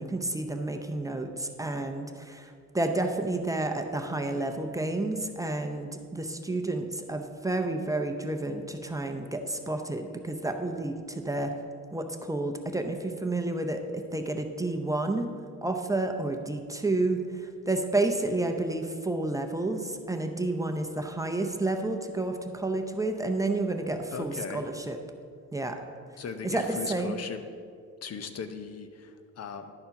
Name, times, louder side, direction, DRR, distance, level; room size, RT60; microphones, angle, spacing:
voice 1, 0.0-11.5 11.9-15.3 15.6-25.0 25.5-25.8 26.4-27.2, right 2 dB, 10° right, 5 dB, 0.7 m, -30 dB
voice 2, 24.1-24.7 26.2-27.4 28.0-29.7, left 6 dB, 55° left, 9 dB, 0.7 m, -38 dB
10.5 x 4.3 x 5.8 m, 2.2 s
cardioid pair, 90°, 30 cm